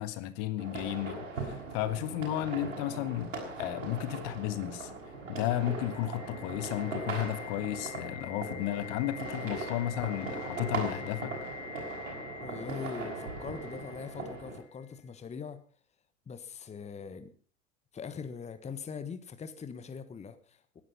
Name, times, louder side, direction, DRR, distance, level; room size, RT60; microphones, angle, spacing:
voice 1, 0.0-3.3 3.6-4.9 5.3-11.3, left 13 dB, 45° left, 13 dB, 1.6 m, -33 dB
sound 1, 0.6-14.6, right 3 dB, 75° right, 5.9 m, -39 dB
sound 2, 5.1-14.9, left 6 dB, 65° left, 3.8 m, -46 dB
voice 2, 12.4-15.6 16.3-17.3 17.9-20.8, left 6 dB, 15° left, 11 dB, 1.4 m, -42 dB
19.5 x 11.5 x 5.5 m, 0.41 s
figure-of-eight pair, 85°, 39 cm